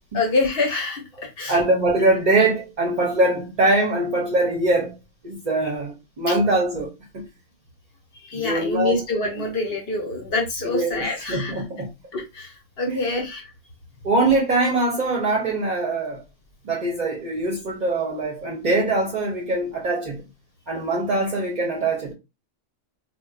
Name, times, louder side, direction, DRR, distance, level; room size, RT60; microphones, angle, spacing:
voice 1, 0.1-1.0 1.4-1.5 8.3-11.5 12.1-12.5 12.8-13.4, left 3 dB, 55° left, 1.1 m, -25 dB
voice 2, 1.5-5.0 5.2-7.3 8.3-9.5 10.6-11.9 12.9-13.1 14.0-16.2 16.6-20.2 20.7-22.1, right 2 dB, 45° right, 0.7 m, -23 dB
4.2 x 2.2 x 2.3 m
omnidirectional pair, 1.3 m